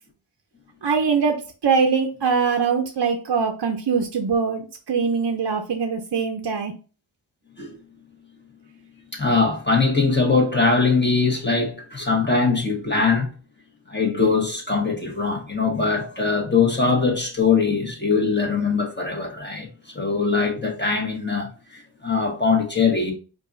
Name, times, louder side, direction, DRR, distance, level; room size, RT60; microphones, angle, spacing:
voice 1, 0.8-6.7, right 5 dB, 60° right, 0.6 m, -22 dB
voice 2, 9.1-13.3 13.9-19.7 19.9-23.1, left 4 dB, 25° left, 1.3 m, -21 dB
4.7 x 2.6 x 2.6 m
wide cardioid pair, 75°, 44 cm